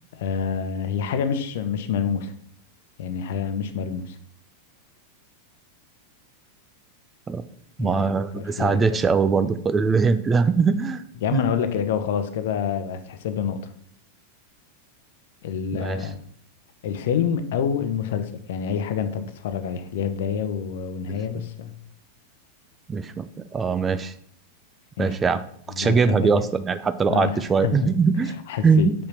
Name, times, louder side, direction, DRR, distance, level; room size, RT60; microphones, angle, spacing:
voice 1, 0.1-2.3 3.0-4.2 7.8-8.0 8.4-9.0 11.2-13.7 15.4-16.2 16.8-21.7 25.0-25.2 25.7-26.4 27.1-27.9 28.5-28.9, left 7 dB, 55° left, 10 dB, 0.8 m, -27 dB
voice 2, 7.8-11.0 11.3-11.4 15.7-16.1 22.9-23.3 23.5-24.1 25.0-25.4 25.8-28.3 28.6-28.9, right 5 dB, 20° right, 13 dB, 0.5 m, -21 dB
6.7 x 5.7 x 5.8 m, 0.66 s
figure-of-eight pair, 90°, 0 cm